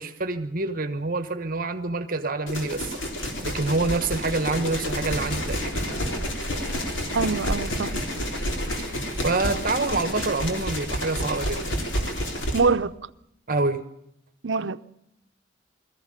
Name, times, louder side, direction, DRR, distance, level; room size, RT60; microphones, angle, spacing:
voice 1, 0.0-3.0 3.4-5.9 8.8-8.9 9.2-11.9 13.5-13.8, right 3 dB, 50° right, 1.3 m, -27 dB
sound 1, 2.5-12.6, equal, 85° left, 3.7 m, -29 dB
voice 2, 7.1-8.0 12.5-12.9 14.4-14.9, right 4 dB, 80° right, 0.7 m, -24 dB
21.5 x 14.5 x 8.9 m
head